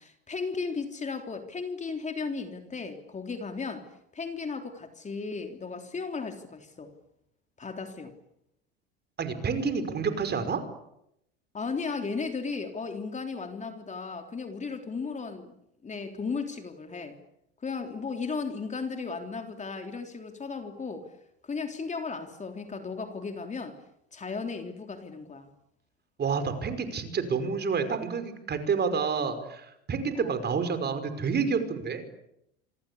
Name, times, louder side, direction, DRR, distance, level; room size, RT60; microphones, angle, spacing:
voice 1, 0.0-3.9 4.1-6.9 7.6-8.1 11.5-15.5 15.8-17.2 17.6-21.1 21.4-23.8 24.1-25.5 30.2-30.3, left 4 dB, 20° left, 6 dB, 3.6 m, -35 dB
voice 2, 9.2-10.6 26.2-32.1, right 5 dB, 30° right, 10 dB, 5.4 m, -29 dB
26.5 x 26.0 x 8.4 m, 0.80 s
hypercardioid pair, 90°, 32 cm